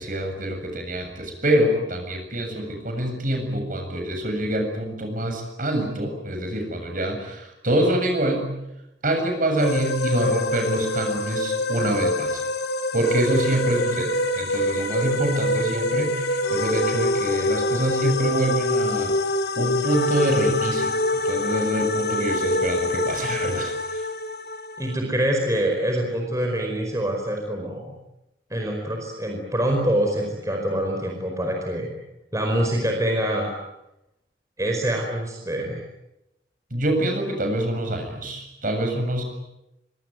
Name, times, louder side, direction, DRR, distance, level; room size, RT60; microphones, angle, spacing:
voice 1, 0.0-8.5 9.0-12.4 12.9-19.1 19.6-24.1 36.7-39.2, right 1 dB, 50° right, 4 dB, 7.5 m, -25 dB
sound 1, 9.6-25.0, left 1 dB, 60° left, 2.7 m, -25 dB
voice 2, 24.8-27.9 28.5-31.9 32.3-33.5 34.6-35.8, right 1 dB, 20° right, 1 dB, 5.0 m, -25 dB
25.0 x 24.5 x 9.4 m, 0.90 s
head